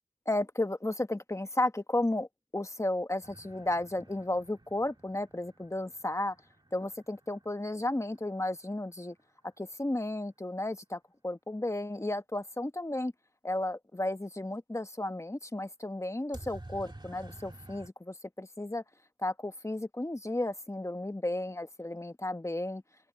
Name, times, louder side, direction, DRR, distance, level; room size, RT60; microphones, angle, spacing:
voice 1, 0.3-2.3 2.5-6.4 6.7-9.2 9.6-13.1 13.4-18.8 19.2-22.8, left 1 dB, 20° left, 1.1 m, -33 dB
sound 1, 3.2-9.0 16.3-17.9, right 2 dB, 35° right, 2.0 m, -51 dB
wide cardioid pair, 50°, 13 cm